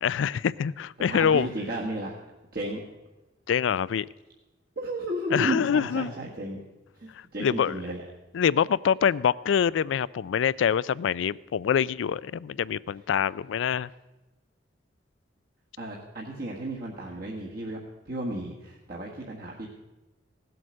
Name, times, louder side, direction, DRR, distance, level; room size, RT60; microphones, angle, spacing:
voice 1, 0.0-1.5 3.5-4.1 5.3-6.1 7.4-7.7 8.3-13.9, left 7 dB, 80° left, 20 dB, 0.3 m, -25 dB
voice 2, 1.1-2.1 2.5-2.8 4.8-6.6 7.0-8.0 15.8-17.8 18.1-19.7, right 1 dB, 55° right, -3 dB, 1.6 m, -33 dB
17.0 x 7.8 x 6.4 m, 1.1 s
head